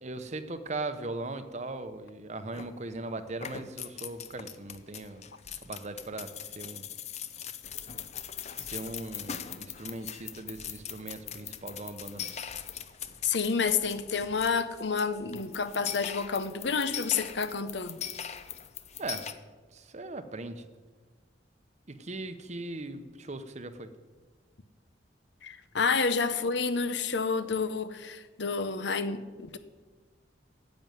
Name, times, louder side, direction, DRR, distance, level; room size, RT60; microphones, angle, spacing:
voice 1, 0.0-5.2 5.6-6.9 8.6-12.3 19.0-19.3 19.7-20.6 21.9-23.9, right 2 dB, 40° right, 0.8 m, -39 dB
sound 1, 2.5-3.0 3.3-19.3, left 8 dB, 35° left, 0.6 m, -41 dB
voice 2, 13.2-18.0 25.4-29.6, left 5 dB, 70° left, 0.8 m, -29 dB
10.5 x 7.8 x 9.4 m
head